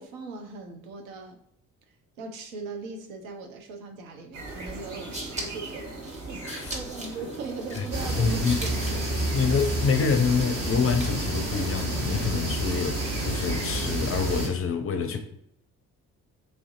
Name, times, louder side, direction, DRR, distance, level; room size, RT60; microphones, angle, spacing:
voice 1, 0.0-1.4 2.2-8.8, right 4 dB, 75° right, 0.6 m, -39 dB
sound 1, 4.3-14.5, right 2 dB, 40° right, 1.2 m, -40 dB
sound 2, 5.0-11.4, right 1 dB, 15° right, 1.0 m, -41 dB
voice 2, 6.4-6.8 7.7-7.9 8.2-8.6 9.3-15.2, left 5 dB, 35° left, 0.5 m, -26 dB
sound 3, 7.9-14.5, right 1 dB, 60° right, 1.4 m, -29 dB
3.3 x 2.5 x 2.4 m
figure-of-eight pair, 40°, 41 cm